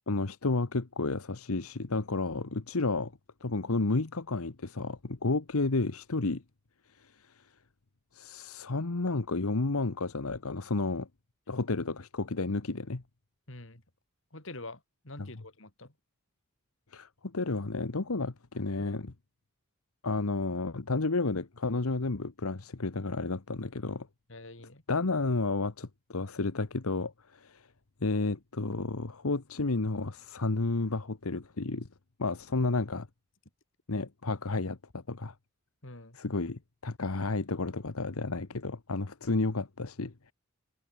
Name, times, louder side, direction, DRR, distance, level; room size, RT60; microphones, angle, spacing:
voice 1, 0.1-3.1 3.4-6.4 7.0-7.1 8.1-11.1 11.5-13.0 16.9-19.1 20.0-24.1 24.9-27.7 28.0-31.9 32.2-33.1 33.9-35.3 36.1-40.3, left 3 dB, 85° left, 1.2 m, -31 dB
voice 2, 13.5-13.8 14.3-15.9 24.3-24.8 35.8-36.2, left 2 dB, 60° left, 3.6 m, -46 dB
head